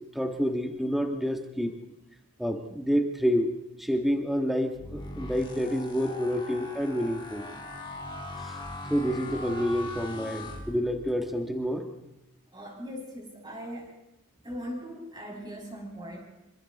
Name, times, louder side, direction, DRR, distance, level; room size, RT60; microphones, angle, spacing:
voice 1, 0.1-1.7 2.4-3.5 3.8-7.4 8.4-8.5 8.9-11.8, equal, ahead, 4 dB, 1.5 m, -28 dB
sound 1, 4.7-11.2, left 1 dB, 20° left, 3.2 m, -40 dB
voice 2, 12.5-13.9 14.4-16.2, equal, 20° right, -1 dB, 6.1 m, -39 dB
26.5 x 25.0 x 4.2 m, 0.96 s
head